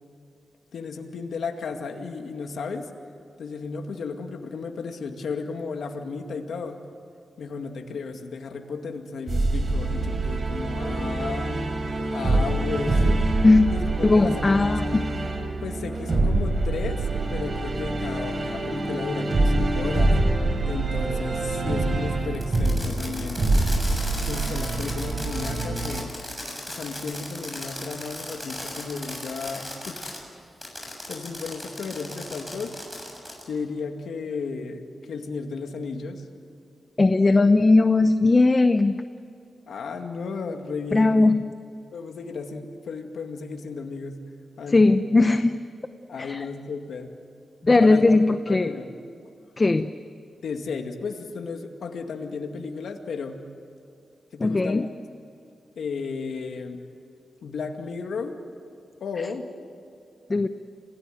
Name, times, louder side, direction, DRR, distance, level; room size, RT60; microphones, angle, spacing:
voice 1, 0.7-2.9 3.4-6.8 7.4-11.6 12.1-13.2 13.7-14.3 14.6-14.8 15.6-20.2 20.7-23.5 23.8-26.1 26.7-30.1 31.1-32.8 33.5-36.2 39.7-41.3 41.9-44.2 44.6-44.8 46.1-47.1 47.8-48.1 48.5-48.9 50.4-53.4 54.3-54.9 55.8-56.9 57.4-58.4 59.0-59.5, left 4 dB, 80° left, 4 dB, 2.2 m, -34 dB
sound 1, 9.3-26.0, right 2 dB, 45° right, 3.7 m, -25 dB
voice 2, 14.0-15.0 37.0-39.0 40.9-41.5 44.7-45.5 46.2-46.5 47.6-48.7 49.6-49.9 54.4-54.9 60.3-60.5, left 3 dB, 30° left, 9 dB, 0.8 m, -18 dB
Fireworks, 22.3-30.2 30.6-33.5, left 1 dB, 5° left, 7.2 m, -37 dB
27.5 x 18.0 x 9.3 m, 2.5 s
cardioid pair, 90°, 0 cm